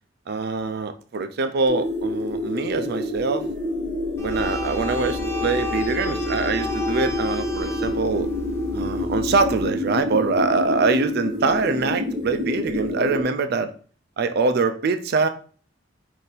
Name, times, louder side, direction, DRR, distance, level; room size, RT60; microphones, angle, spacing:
voice 1, 0.3-3.5 4.2-8.3 8.7-13.7 14.2-15.3, right 4 dB, 55° right, 0.4 m, -24 dB
sound 1, 1.7-13.2, left 1 dB, 30° right, 1.9 m, -28 dB
sound 2, 4.2-9.6, left 2 dB, 15° left, 0.7 m, -33 dB
3.8 x 2.6 x 4.0 m
head